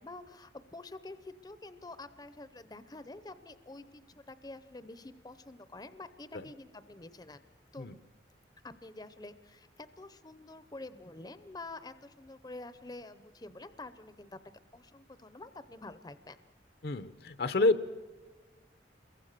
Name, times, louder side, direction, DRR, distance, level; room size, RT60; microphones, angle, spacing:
voice 1, 0.0-7.4 7.7-7.9 8.6-14.4 14.7-16.4, left 2 dB, 20° left, 12 dB, 0.7 m, -48 dB
voice 2, 16.8-17.9, left 2 dB, 55° left, 12 dB, 0.7 m, -29 dB
28.5 x 22.5 x 6.7 m, 1.3 s
head